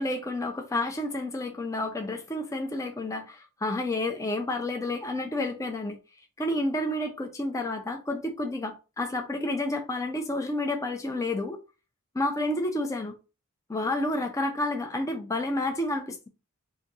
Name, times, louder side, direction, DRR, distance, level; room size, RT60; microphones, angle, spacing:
voice 1, 0.0-6.0 6.4-11.6 12.1-13.2 13.7-16.3, left 1 dB, 15° left, 0.4 m, -30 dB
2.6 x 2.5 x 4.0 m
head